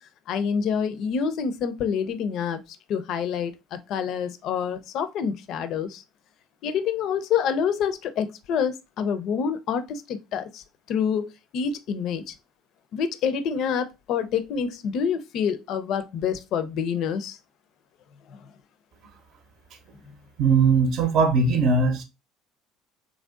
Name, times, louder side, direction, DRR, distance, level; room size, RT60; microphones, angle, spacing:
voice 1, 0.3-2.6 2.9-6.0 6.6-12.3 12.9-17.4, left 7 dB, 55° left, 0.4 m, -27 dB
voice 2, 20.4-22.0, right 4 dB, 55° right, 0.7 m, -20 dB
3.2 x 2.6 x 2.4 m
hypercardioid pair, 60°, 0 cm